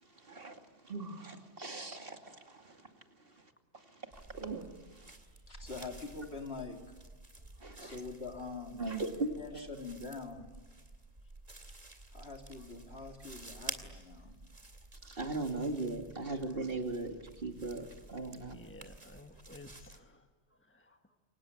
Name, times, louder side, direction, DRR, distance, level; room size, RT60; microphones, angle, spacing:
voice 1, 0.0-2.9 3.2-5.1 7.6-7.9 8.8-9.7 15.0-18.5, right 2 dB, 55° right, 2.8 m, -39 dB
sound 1, 4.1-20.0, right 2 dB, 35° right, 2.3 m, -51 dB
voice 2, 5.5-6.9 7.8-10.5 12.1-14.3, left 3 dB, 65° left, 3.3 m, -45 dB
voice 3, 18.4-20.2 20.7-21.0, left 2 dB, 10° left, 1.4 m, -53 dB
29.0 x 24.0 x 8.6 m
omnidirectional pair, 1.2 m